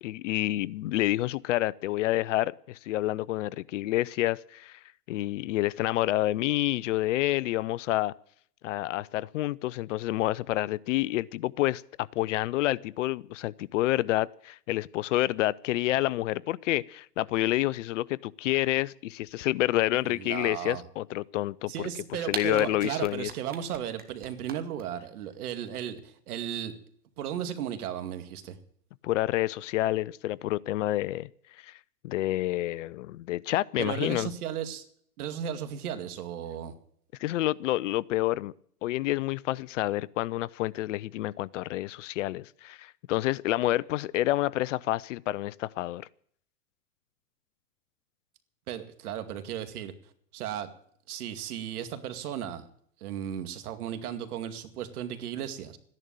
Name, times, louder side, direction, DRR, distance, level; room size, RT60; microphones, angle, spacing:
voice 1, 0.0-4.8 5.1-8.1 8.6-21.7 22.3-23.3 29.0-31.3 31.6-31.8 32.0-34.3 37.2-38.5 38.8-46.1, left 16 dB, 50° left, 23 dB, 0.5 m, -28 dB
voice 2, 20.0-20.8 21.7-26.7 27.2-28.6 33.8-34.8 35.2-36.7 48.7-49.9 50.3-50.7 51.1-52.7 53.0-55.8, right 9 dB, 65° right, 10 dB, 2.3 m, -35 dB
sound 1, 22.3-24.8, right 7 dB, 20° right, 1.9 m, -37 dB
14.0 x 11.0 x 8.9 m, 0.62 s
hypercardioid pair, 125°, 48 cm